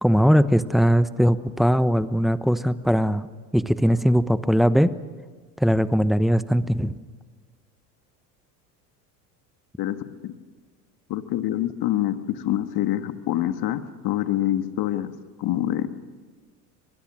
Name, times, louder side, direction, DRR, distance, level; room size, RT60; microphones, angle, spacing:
voice 1, 0.0-3.2 3.5-4.9 5.6-6.9, equal, ahead, 13 dB, 1.0 m, -20 dB
voice 2, 11.1-15.1 15.4-15.9, left 13 dB, 50° left, 9 dB, 1.8 m, -25 dB
24.5 x 21.5 x 6.3 m, 1.5 s
hypercardioid pair, 80°, 48 cm